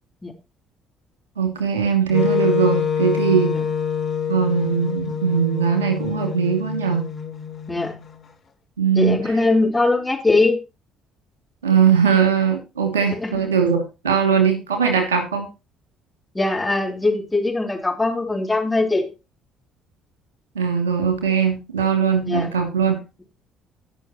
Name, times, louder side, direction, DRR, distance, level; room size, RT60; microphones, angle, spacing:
voice 1, 1.4-3.5 4.3-7.1 8.8-9.2 11.6-15.5 20.5-23.0, right 7 dB, 80° right, 4 dB, 2.6 m, -20 dB
Wind instrument woodwind instrument, 2.1-8.2, left 7 dB, 45° left, 1.7 m, -26 dB
voice 2, 8.9-10.6 13.1-13.3 16.3-19.1 22.2-22.5, left 2 dB, 15° left, 2 dB, 3.3 m, -21 dB
18.0 x 6.2 x 3.1 m, 0.28 s
figure-of-eight pair, 50°, 0 cm